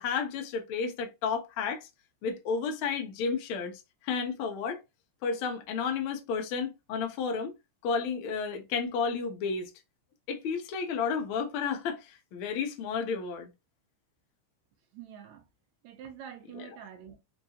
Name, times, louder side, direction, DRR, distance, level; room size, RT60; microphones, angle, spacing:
voice 1, 0.0-1.9 2.2-4.8 5.2-7.5 7.8-9.7 10.3-13.5 16.5-16.7, left 5 dB, 80° left, 1.2 m, -32 dB
voice 2, 14.9-15.4 15.8-17.2, right 9 dB, 80° right, 2.0 m, -46 dB
5.0 x 2.3 x 2.7 m
omnidirectional pair, 3.4 m